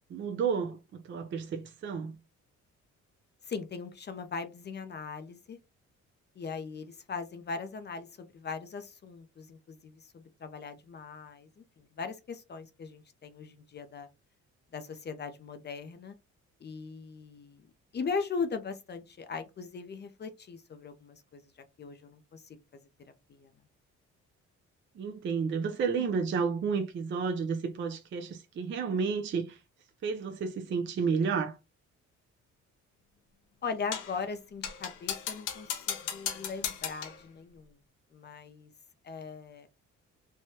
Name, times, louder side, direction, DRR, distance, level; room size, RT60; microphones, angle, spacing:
voice 1, 0.1-2.1 25.0-29.6 30.0-31.6, right 5 dB, 40° right, 0.4 m, -31 dB
voice 2, 3.4-5.6 6.4-14.1 14.7-16.2 16.6-17.7 17.9-21.4 21.8-22.6 23.3-23.5 33.6-37.8 38.1-38.7 39.0-39.7, left 5 dB, 35° left, 0.5 m, -39 dB
sound 1, 33.9-34.2 34.6-37.2, left 9 dB, 90° left, 0.7 m, -36 dB
3.3 x 2.1 x 2.7 m
cardioid pair, 90°, 30 cm